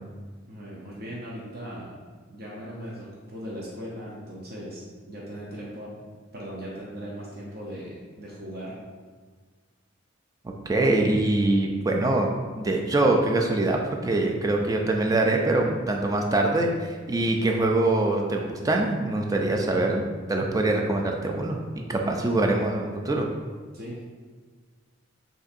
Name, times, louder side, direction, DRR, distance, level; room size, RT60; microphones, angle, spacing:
voice 1, 0.5-1.9 2.3-6.0 6.3-8.8 22.0-22.2 23.7-24.0, equal, 50° right, -5 dB, 0.6 m, -38 dB
voice 2, 10.4-20.0 20.3-23.3, right 2 dB, 15° right, 1 dB, 0.3 m, -24 dB
6.6 x 2.6 x 2.5 m, 1.5 s
head